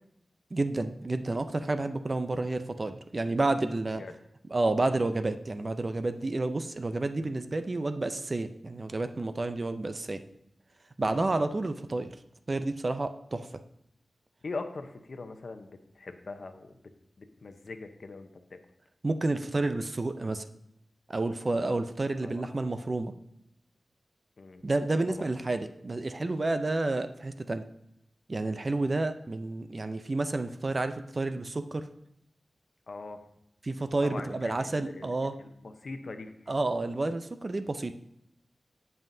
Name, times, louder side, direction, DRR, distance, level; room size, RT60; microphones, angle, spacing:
voice 1, 0.5-4.0 4.5-10.2 11.0-12.2 12.5-13.5 19.0-20.5 21.1-23.1 24.6-27.6 28.3-31.8 33.6-35.3 36.5-37.9, right 2 dB, 40° right, 9 dB, 0.6 m, -30 dB
voice 2, 14.4-15.7 16.0-16.8 17.2-18.6 22.2-22.5 24.4-24.6 25.1-25.2 32.9-33.2 34.0-36.3, left 3 dB, 65° left, 7 dB, 0.8 m, -41 dB
16.5 x 5.6 x 2.7 m, 0.78 s
wide cardioid pair, 90°, 0 cm